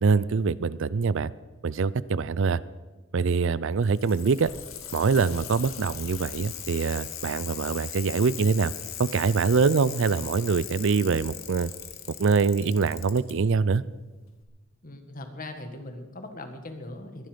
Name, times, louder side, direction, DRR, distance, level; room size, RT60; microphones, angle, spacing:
voice 1, 0.0-1.3 1.6-2.6 3.1-4.5 4.9-8.7 9.0-11.7 12.2-13.8, right 5 dB, 65° right, 19 dB, 0.5 m, -24 dB
Bicycle, 3.7-13.3 14.4-14.5, left 10 dB, 90° left, 1.7 m, -39 dB
voice 2, 14.8-17.3, left 2 dB, 45° left, 7 dB, 1.8 m, -40 dB
21.0 x 11.5 x 5.2 m, 1.2 s
head